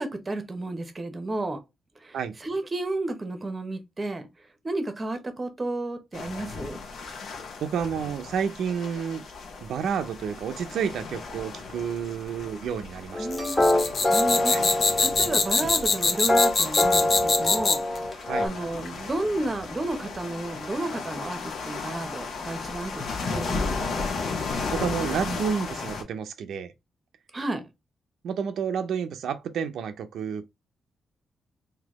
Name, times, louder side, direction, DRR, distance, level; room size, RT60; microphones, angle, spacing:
voice 1, 0.0-1.6 2.0-4.3 4.6-6.8 13.2-13.6 14.1-14.5 15.0-17.8 18.1-24.0 27.3-27.6, right 2 dB, 20° right, 0.8 m, -32 dB
sound 1, 6.1-26.0, left 4 dB, 75° left, 1.2 m, -35 dB
voice 2, 7.6-9.2 9.6-13.5 14.5-14.7 18.3-18.5 24.7-26.7 28.2-30.5, right 7 dB, 85° right, 0.5 m, -30 dB
sound 2, 13.1-18.5, left 1 dB, 20° left, 1.5 m, -25 dB
sound 3, 13.3-18.0, left 4 dB, 40° left, 0.7 m, -23 dB
4.0 x 2.7 x 2.9 m
wide cardioid pair, 150°, 0 cm